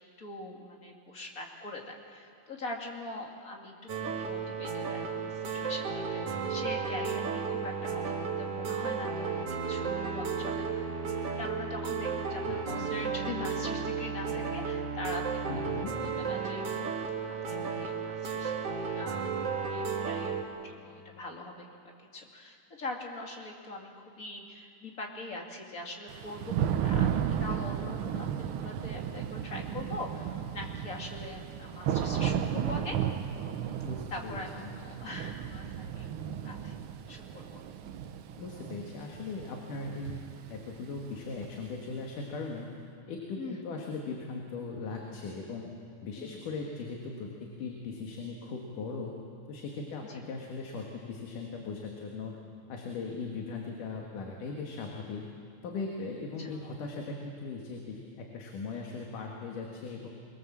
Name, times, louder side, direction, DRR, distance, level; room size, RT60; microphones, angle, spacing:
voice 1, 0.2-16.7 17.5-18.7 19.0-33.0 34.1-36.1 36.4-36.8 37.1-37.6 43.4-43.7 46.2-46.5 50.0-50.2 56.4-56.6, left 2 dB, 30° left, 1 dB, 2.4 m, -42 dB
sound 1, 3.9-20.4, right 5 dB, 55° right, 2.5 m, -33 dB
voice 2, 12.5-12.9 15.5-15.9 33.8-34.7 38.4-40.2 40.5-42.7 43.1-45.7 46.0-49.2 49.5-52.4 52.7-55.2 55.6-60.1, left 4 dB, 85° left, 0 dB, 3.4 m, -39 dB
Thunder / Rain, 26.1-41.9, right 9 dB, 85° right, 1.1 m, -34 dB
23.5 x 22.5 x 7.4 m, 2.3 s
omnidirectional pair, 3.6 m